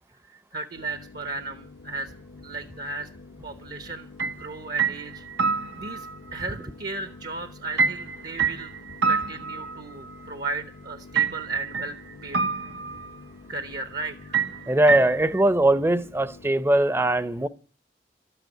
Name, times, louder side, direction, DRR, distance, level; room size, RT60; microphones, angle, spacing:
voice 1, 0.3-2.1 2.4-3.1 3.4-4.1 4.4-5.2 5.7-6.1 6.3-8.7 9.0-12.0 12.2-12.4 13.5-14.4, right 3 dB, 55° right, 1.1 m, -35 dB
sound 1, 0.7-16.5, left 3 dB, 80° left, 0.9 m, -47 dB
sound 2, 4.2-4.4 4.8-6.2 7.8-10.1 11.1-12.0 12.3-13.2 14.3-15.4, right 5 dB, 85° right, 1.0 m, -26 dB
voice 2, 14.7-17.5, right 1 dB, 15° right, 0.7 m, -21 dB
13.0 x 9.3 x 9.2 m
head